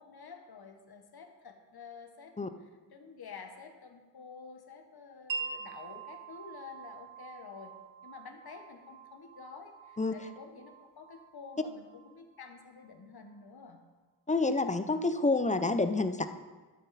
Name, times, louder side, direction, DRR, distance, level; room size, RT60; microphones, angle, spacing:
voice 1, 0.0-7.7 8.0-13.8, left 5 dB, 60° left, 4 dB, 1.1 m, -49 dB
Wind chime, 5.3-12.9, right 5 dB, 85° right, 0.8 m, -45 dB
voice 2, 14.3-16.3, left 3 dB, 20° left, 10 dB, 0.4 m, -28 dB
12.5 x 5.9 x 4.1 m, 1.3 s
wide cardioid pair, 105°, 43 cm